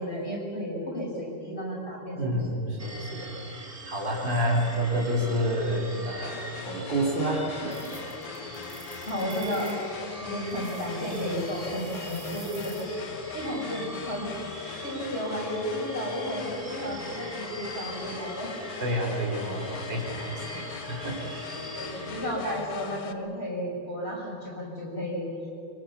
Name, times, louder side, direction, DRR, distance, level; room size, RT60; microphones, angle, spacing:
voice 1, 0.0-2.4 4.4-4.5 9.1-9.8 10.2-12.9 13.3-14.3 14.8-18.5 21.7-25.3, equal, 25° left, -3 dB, 5.8 m, -33 dB
voice 2, 2.1-6.4 6.6-7.8 18.8-21.2, right 1 dB, 55° right, -2 dB, 4.7 m, -29 dB
sound 1, 2.8-22.3, right 1 dB, 15° right, 2.3 m, -42 dB
sound 2, 6.2-23.1, left 7 dB, 85° left, 2.0 m, -41 dB
sound 3, 7.7-9.8 10.5-12.8, right 4 dB, 75° right, 3.6 m, -48 dB
24.0 x 24.0 x 7.0 m, 2.8 s
omnidirectional pair, 2.4 m